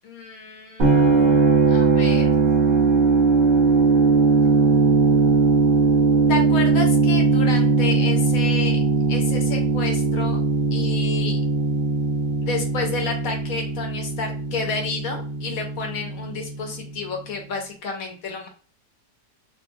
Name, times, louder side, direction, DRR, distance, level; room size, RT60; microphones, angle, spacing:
voice 1, 0.0-1.2 1.7-2.4 6.3-8.8 9.1-10.4 10.7-11.4 12.4-18.5, left 4 dB, 65° left, 3 dB, 1.0 m, -30 dB
sound 1, 0.8-16.7, right 4 dB, 40° right, 0.9 m, -19 dB
3.3 x 2.0 x 2.6 m, 0.40 s
omnidirectional pair, 1.8 m